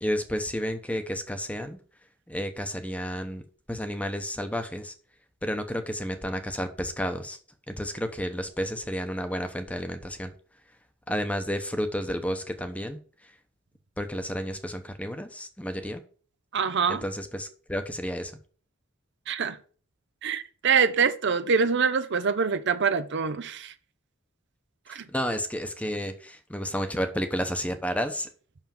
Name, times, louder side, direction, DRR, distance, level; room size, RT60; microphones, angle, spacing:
voice 1, 0.0-1.8 2.3-3.4 3.7-4.9 5.4-7.4 7.7-10.3 11.1-13.3 14.0-16.0 16.9-18.4 24.9-28.3, equal, 5° left, 0.9 m, -31 dB
voice 2, 16.5-17.0 19.3-19.6 20.2-23.7 24.9-25.0, right 6 dB, 60° right, 0.7 m, -25 dB
6.1 x 5.9 x 6.9 m
head